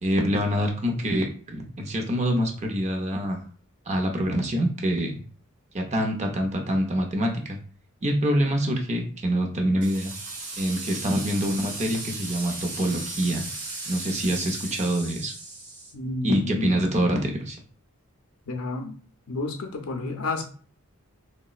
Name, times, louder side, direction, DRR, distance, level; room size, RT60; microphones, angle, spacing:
voice 1, 0.0-3.4 3.9-5.2 5.7-7.6 8.0-10.1 10.6-13.5 13.9-15.3 16.2-17.6, equal, 30° right, 3 dB, 0.6 m, -25 dB
sound 1, 9.8-15.9, right 2 dB, 85° right, 0.9 m, -36 dB
voice 2, 15.9-16.7 18.5-18.9 19.3-20.4, left 3 dB, 85° left, 3 dB, 0.5 m, -30 dB
3.9 x 2.1 x 2.3 m, 0.41 s
head